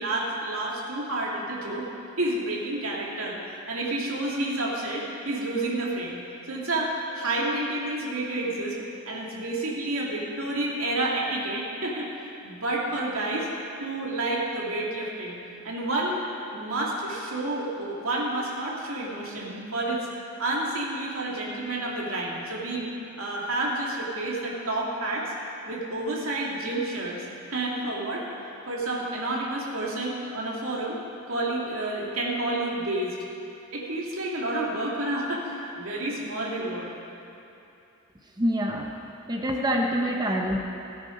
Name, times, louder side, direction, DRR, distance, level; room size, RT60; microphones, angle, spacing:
voice 1, 0.0-1.9 2.2-3.4 3.7-6.2 6.5-8.8 9.1-12.1 12.4-13.5 13.8-15.4 15.6-16.3 16.5-20.1 20.4-25.3 25.7-28.2 28.7-31.0 31.3-33.1 33.7-36.9 40.0-40.1, right 2 dB, 85° right, -4 dB, 2.5 m, -29 dB
voice 2, 38.4-38.9 39.3-40.6, equal, 20° right, 1 dB, 0.9 m, -25 dB
17.0 x 8.9 x 5.2 m, 2.7 s
head